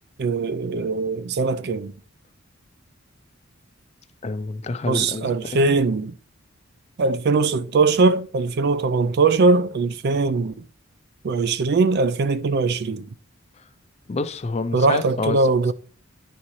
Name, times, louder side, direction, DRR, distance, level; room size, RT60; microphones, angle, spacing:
voice 1, 0.2-1.9 4.9-6.1 7.0-10.5 11.2-13.1 14.7-15.7, right 3 dB, 50° right, 0.4 m, -21 dB
voice 2, 4.2-5.7 14.1-15.4, left 3 dB, 30° left, 0.4 m, -28 dB
9.7 x 4.1 x 3.0 m
head